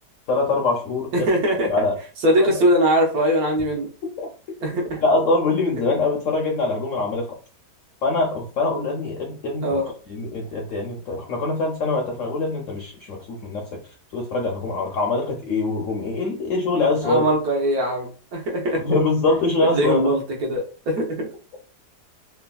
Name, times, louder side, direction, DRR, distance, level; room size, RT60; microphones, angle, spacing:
voice 1, 0.3-1.3 1.7-2.0 2.4-2.5 4.2-4.3 5.0-7.3 8.0-9.8 10.1-13.6 14.1-17.2 18.8-20.1, left 3 dB, 70° left, 0 dB, 0.7 m, -23 dB
voice 2, 1.1-1.7 2.2-3.9 4.6-5.0 9.6-9.9 17.0-18.8 19.7-21.3, equal, 65° right, 0 dB, 1.1 m, -21 dB
3.2 x 2.2 x 2.2 m, 0.37 s
omnidirectional pair, 1.8 m